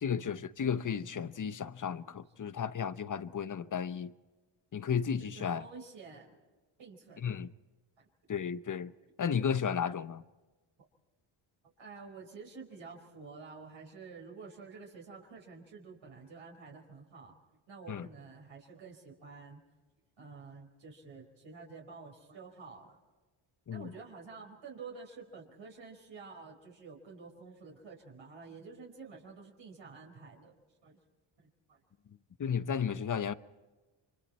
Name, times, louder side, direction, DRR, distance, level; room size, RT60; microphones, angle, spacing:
voice 1, 0.0-4.1 4.7-5.6 7.2-7.5 8.3-8.9 9.2-10.2 17.9-18.1 23.7-23.9 32.4-33.3, left 7 dB, 40° left, 0.9 m, -33 dB
voice 2, 5.2-6.4 6.8-7.3 11.8-17.3 17.7-19.6 20.2-23.0 23.7-30.6 30.8-31.0 31.4-31.8, right 4 dB, 60° right, 4.7 m, -50 dB
29.5 x 25.0 x 4.4 m
supercardioid pair, 60°, 50 cm